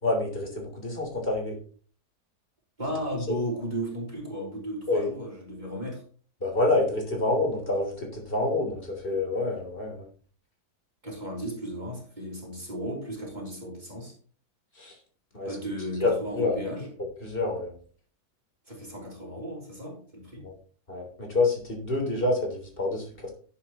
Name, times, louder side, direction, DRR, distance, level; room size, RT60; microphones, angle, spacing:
voice 1, 0.0-1.6 3.3-3.4 4.9-5.1 6.4-10.1 14.7-14.9 15.3-15.5 16.0-16.6 17.2-17.7 20.4-20.5 20.9-23.3, left 2 dB, 35° left, 3.5 m, -27 dB
voice 2, 2.8-6.0 11.0-14.1 15.4-16.9 18.7-20.4, equal, 25° right, 3.4 m, -35 dB
11.0 x 9.7 x 3.0 m
omnidirectional pair, 1.7 m